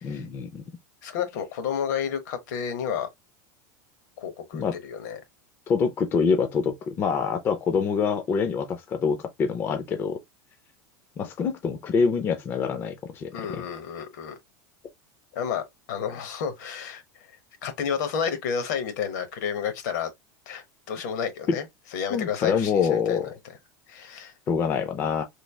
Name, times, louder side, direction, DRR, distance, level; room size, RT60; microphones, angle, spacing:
voice 1, 0.0-0.6 4.5-4.7 5.7-10.2 11.2-13.7 21.5-21.6 22.1-23.3 24.5-25.2, left 6 dB, 20° left, 0.4 m, -26 dB
voice 2, 1.0-3.1 4.2-5.2 13.3-14.3 15.3-15.6 15.9-17.0 17.6-20.1 20.5-21.6 21.9-23.3 23.9-24.3, left 7 dB, 70° left, 0.9 m, -31 dB
3.1 x 2.3 x 3.2 m
supercardioid pair, 160°, 10 cm